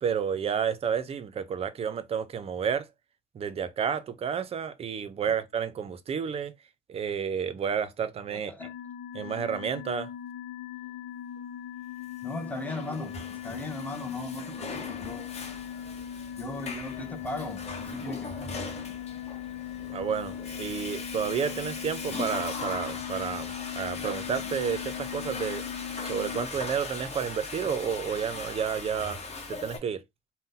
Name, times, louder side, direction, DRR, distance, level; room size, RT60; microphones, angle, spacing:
voice 1, 0.0-2.9 3.3-6.5 6.9-8.5 9.1-10.1 19.9-25.6 26.0-29.2 29.5-30.0, right 7 dB, 35° right, 0.5 m, -31 dB
voice 2, 8.3-8.7 12.2-15.3 16.4-18.5 18.7-18.9 19.3-19.4, left 2 dB, 10° left, 0.7 m, -38 dB
sound 1, 8.6-26.5, left 10 dB, 75° left, 0.5 m, -39 dB
Water / Toilet flush, 12.3-29.8, left 3 dB, 40° left, 1.0 m, -39 dB
2.6 x 2.1 x 3.7 m
cardioid pair, 110°, 17 cm